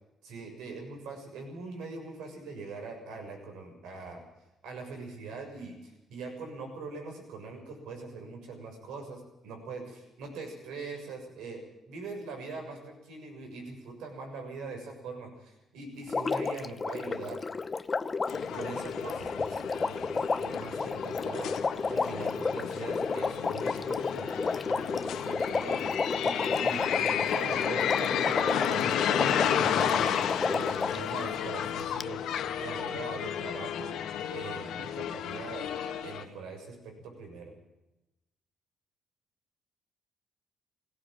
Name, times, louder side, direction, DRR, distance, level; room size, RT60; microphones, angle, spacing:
voice 1, 0.2-4.2 4.6-17.4 18.5-21.5 21.9-25.8 26.2-30.2 30.5-33.9 34.3-35.7 36.0-37.5, right 4 dB, 90° right, 3 dB, 6.9 m, -42 dB
Water, 16.1-31.1 32.0-32.1, left 4 dB, 30° left, 0.8 m, -32 dB
sound 1, 18.3-36.2, left 9 dB, 80° left, 1.8 m, -32 dB
18.0 x 18.0 x 8.8 m, 0.97 s
cardioid pair, 90°, 0 cm